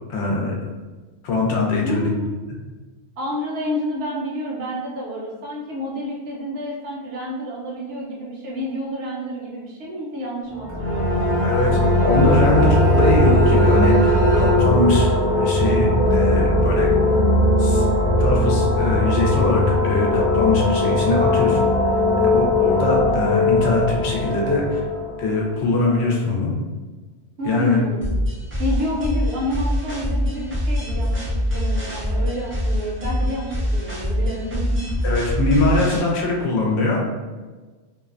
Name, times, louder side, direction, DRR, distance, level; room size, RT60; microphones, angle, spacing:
voice 1, 0.1-0.5 1.2-2.1 11.4-11.8 12.0-16.9 17.6-17.9 18.2-21.6 22.2-24.8 25.2-26.5 27.4-27.8 35.0-37.0, left 2 dB, 75° left, -1 dB, 0.8 m, -22 dB
voice 2, 1.8-2.3 3.2-11.6 27.4-28.1 28.6-35.0, equal, 65° right, -3 dB, 0.8 m, -29 dB
sound 1, 10.5-26.0, left 1 dB, 45° left, 0.8 m, -19 dB
Bowed string instrument, 10.7-15.0, left 2 dB, 85° right, 1.0 m, -24 dB
sound 2, 28.0-36.0, equal, 20° right, 0.3 m, -24 dB
2.5 x 2.1 x 2.4 m, 1.3 s
omnidirectional pair, 1.2 m